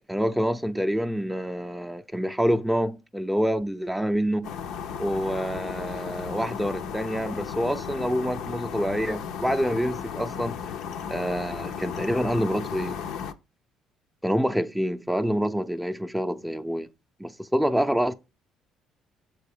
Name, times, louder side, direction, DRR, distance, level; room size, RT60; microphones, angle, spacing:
voice 1, 0.1-4.5 5.0-10.6 11.1-13.0 14.2-16.9 17.2-18.1, equal, 5° right, 0.5 m, -27 dB
sound 1, 4.4-13.3, left 7 dB, 70° left, 0.5 m, -35 dB
6.8 x 4.2 x 3.6 m
hypercardioid pair, 55°, 0 cm